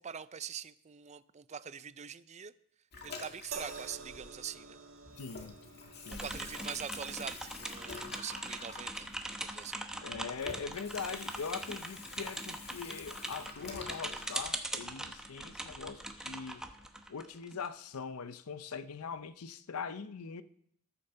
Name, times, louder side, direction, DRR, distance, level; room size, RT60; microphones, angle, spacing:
voice 1, 0.0-2.5 3.0-4.8 6.1-9.9, right 7 dB, 30° right, 0.5 m, -44 dB
Water tap faucet / Sink (filling or washing), 2.9-4.7 5.0-14.5, left 4 dB, 50° left, 1.9 m, -48 dB
sound 1, 3.5-16.8 17.8-18.0, right 5 dB, 65° right, 1.8 m, -53 dB
voice 2, 5.2-5.6 6.1-6.3 10.0-16.6 17.1-20.4, left 5 dB, 90° left, 0.6 m, -42 dB
sound 2, 6.1-17.7, right 1 dB, 5° right, 0.9 m, -41 dB
14.0 x 7.0 x 6.7 m
head